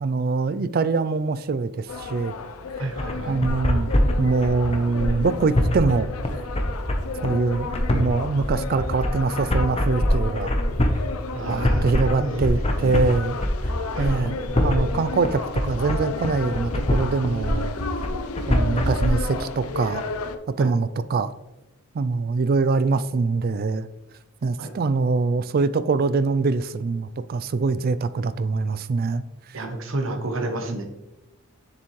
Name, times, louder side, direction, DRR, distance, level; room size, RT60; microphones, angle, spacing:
voice 1, 0.0-2.3 3.3-3.9 4.2-6.1 7.2-10.5 11.5-13.4 14.0-17.7 18.5-20.1 20.6-21.3 21.9-23.9 24.4-29.2, right 4 dB, 45° right, 14 dB, 0.3 m, -24 dB
sound 1, 1.9-20.4, left 4 dB, 85° left, 0.6 m, -33 dB
voice 2, 2.8-3.4 11.3-12.5 12.8-13.0 13.9-14.2 20.6-20.7 24.6-24.7 29.5-30.8, right 2 dB, 60° right, 5 dB, 1.0 m, -31 dB
sound 2, 3.0-19.1, left 1 dB, 30° left, 0.8 m, -24 dB
7.0 x 6.8 x 3.1 m, 0.97 s
head